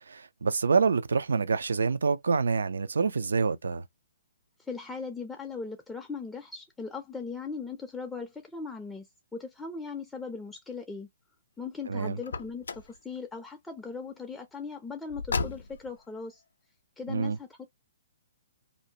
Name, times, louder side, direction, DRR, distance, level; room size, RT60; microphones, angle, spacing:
voice 1, 0.1-3.8 11.9-12.2 17.1-17.4, right 5 dB, 90° right, 0.3 m, -26 dB
voice 2, 4.6-11.1 11.6-16.4 17.0-17.6, left 4 dB, 5° left, 0.3 m, -39 dB
Car, 12.2-13.0 15.1-16.0, left 4 dB, 85° left, 0.4 m, -34 dB
2.5 x 2.1 x 2.7 m
hypercardioid pair, 155°, 0 cm